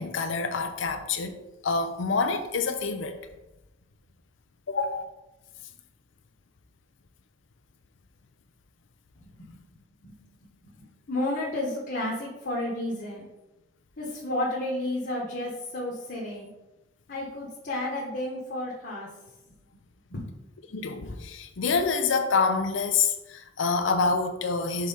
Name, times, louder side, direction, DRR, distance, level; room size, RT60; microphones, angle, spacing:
voice 1, 0.0-1.4 1.6-3.2 4.7-5.0 20.7-24.9, left 4 dB, 85° left, 7 dB, 0.6 m, -27 dB
voice 2, 9.2-9.6 10.0-13.3 14.0-16.5 17.1-19.1 20.1-20.3, left 1 dB, 55° left, -4 dB, 1.2 m, -32 dB
5.5 x 4.8 x 4.2 m, 0.99 s
head